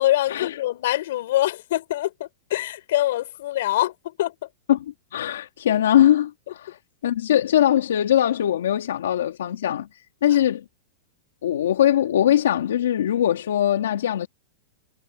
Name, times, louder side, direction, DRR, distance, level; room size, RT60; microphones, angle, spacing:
voice 1, 0.0-4.5 10.3-10.4, left 14 dB, 65° left, 4.9 m, -24 dB
voice 2, 5.1-6.8 7.0-9.9 10.2-10.6 11.4-14.3, left 11 dB, 90° left, 2.2 m, -21 dB
supercardioid pair, 160°, 0 cm